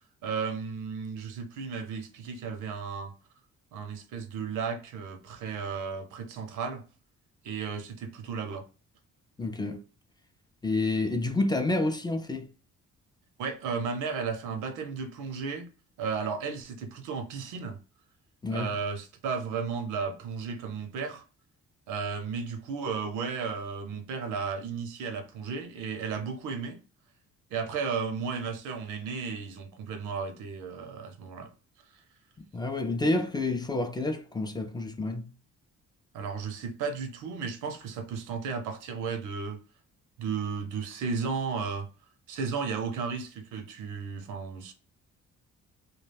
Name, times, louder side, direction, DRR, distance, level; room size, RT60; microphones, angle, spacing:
voice 1, 0.2-3.1 3.7-6.8 7.4-8.6 13.4-15.7 16.0-17.8 18.5-21.2 21.9-26.8 27.5-31.5 36.1-39.6 40.2-41.9 42.3-44.7, right 5 dB, 90° right, 0.6 m, -34 dB
voice 2, 9.4-9.8 10.6-12.5 18.4-18.7 32.5-35.2, left 2 dB, 15° left, 0.3 m, -29 dB
2.3 x 2.1 x 3.2 m
cardioid pair, 90°, 30 cm